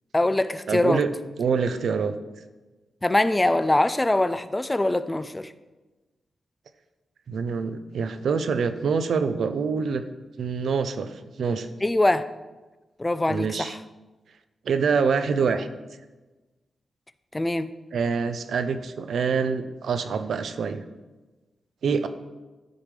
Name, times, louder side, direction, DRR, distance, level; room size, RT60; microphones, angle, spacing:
voice 1, 0.1-1.0 3.0-5.5 11.8-12.3 13.0-13.8 17.3-17.7, left 1 dB, 15° left, 13 dB, 0.4 m, -23 dB
voice 2, 0.7-1.1 1.4-2.1 7.3-10.0 10.4-11.7 13.3-13.7 14.7-15.7 17.9-20.8 21.8-22.1, right 5 dB, 80° right, 10 dB, 0.6 m, -25 dB
13.5 x 5.2 x 3.3 m, 1.2 s
wide cardioid pair, 115°, 0 cm